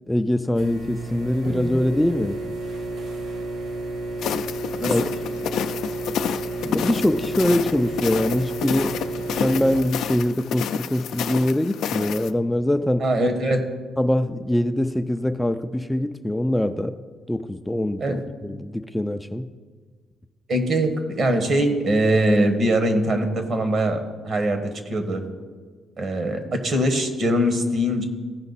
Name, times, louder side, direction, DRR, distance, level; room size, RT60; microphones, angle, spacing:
voice 1, 0.1-2.4 4.8-5.0 6.6-9.0 9.4-13.0 14.0-17.0 17.3-19.5, left 1 dB, 10° left, 8 dB, 0.4 m, -23 dB
sound 1, 0.5-9.8, right 2 dB, 75° right, 1.6 m, -31 dB
sound 2, 4.2-12.3, left 8 dB, 75° left, 0.4 m, -29 dB
voice 2, 4.8-5.1 13.0-13.6 18.0-18.2 20.5-25.2 26.0-28.0, right 1 dB, 55° right, 6 dB, 1.5 m, -22 dB
15.5 x 5.1 x 4.1 m, 1.5 s
cardioid pair, 90°, 0 cm